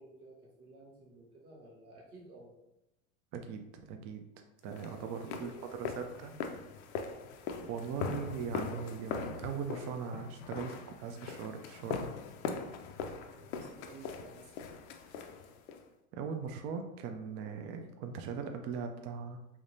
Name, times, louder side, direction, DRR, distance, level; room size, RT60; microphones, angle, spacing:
voice 1, 0.0-2.5 4.7-5.7 12.8-12.9 13.3-14.6 15.0-15.2, right 2 dB, 85° right, -2 dB, 1.2 m, -54 dB
voice 2, 3.3-3.6 3.9-4.2 4.6-6.4 7.6-12.1 16.1-19.4, right 6 dB, 35° right, 5 dB, 0.4 m, -40 dB
sound 1, 4.7-15.9, left 6 dB, 55° left, 0.5 m, -41 dB
3.5 x 3.0 x 2.6 m, 0.87 s
hypercardioid pair, 100°, 42 cm